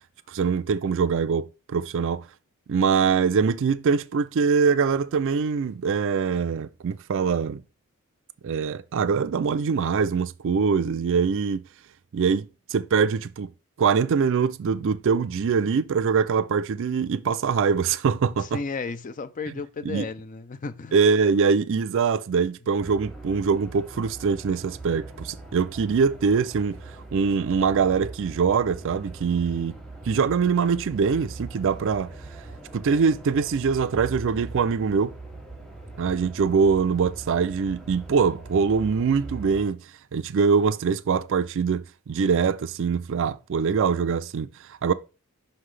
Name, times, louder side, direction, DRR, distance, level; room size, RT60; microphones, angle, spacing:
voice 1, 0.3-2.3 2.7-7.6 8.4-11.6 12.1-13.5 13.8-18.6 19.8-20.1 20.9-26.8 27.1-29.8 30.1-32.1 32.7-35.1 36.0-39.8 40.1-44.9, right 5 dB, 60° right, 0.4 m, -23 dB
voice 2, 18.4-21.0, left 4 dB, 35° left, 0.4 m, -33 dB
sound 1, 22.8-39.6, right 2 dB, 5° left, 1.0 m, -41 dB
5.7 x 5.6 x 3.3 m
head